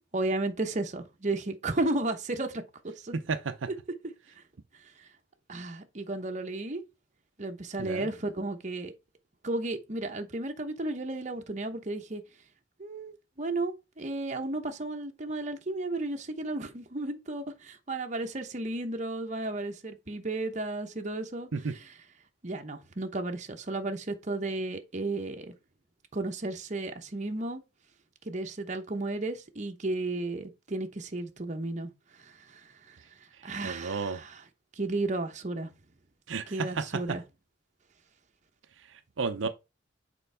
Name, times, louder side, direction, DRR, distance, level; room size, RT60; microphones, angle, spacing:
voice 1, 0.1-2.6 3.0-3.1 5.0-5.1 5.5-6.8 7.4-8.9 9.4-12.2 12.8-22.0 22.4-25.5 26.1-27.6 28.2-33.0 33.4-34.4 34.8-35.7 36.5-37.2, right 2 dB, 40° right, 0.9 m, -33 dB
voice 2, 3.1-3.7 7.8-8.1 21.5-21.7 33.6-34.2 36.3-36.8 39.2-39.5, right 4 dB, 85° right, 0.6 m, -32 dB
6.8 x 4.6 x 3.4 m
head